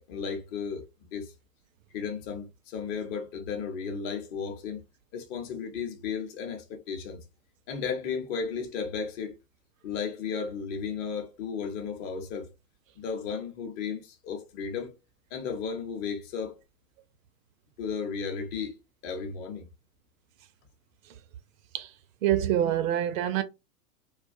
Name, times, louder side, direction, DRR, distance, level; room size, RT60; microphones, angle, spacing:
voice 1, 0.0-1.3 1.9-4.8 5.1-7.2 7.7-9.3 9.8-12.5 13.0-14.9 15.3-16.6 17.8-18.7 19.0-19.7, left 6 dB, 35° left, 0.7 m, -34 dB
voice 2, 22.2-23.4, right 11 dB, 55° right, 0.5 m, -25 dB
2.4 x 2.3 x 2.5 m
hypercardioid pair, 100°, 48 cm